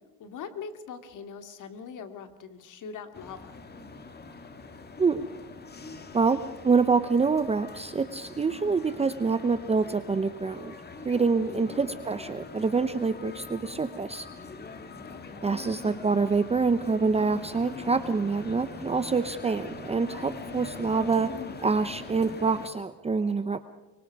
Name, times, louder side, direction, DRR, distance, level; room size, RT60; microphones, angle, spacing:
voice 1, 0.2-3.6 11.4-11.9 15.1-15.4, left 6 dB, 55° left, 7 dB, 2.5 m, -42 dB
sound 1, 3.1-22.7, left 4 dB, 25° left, 2.0 m, -43 dB
voice 2, 6.1-10.7 11.0-14.3 15.4-23.6, right 4 dB, 15° right, 11 dB, 0.8 m, -26 dB
24.5 x 24.0 x 4.8 m, 1.2 s
cardioid pair, 125°, 36 cm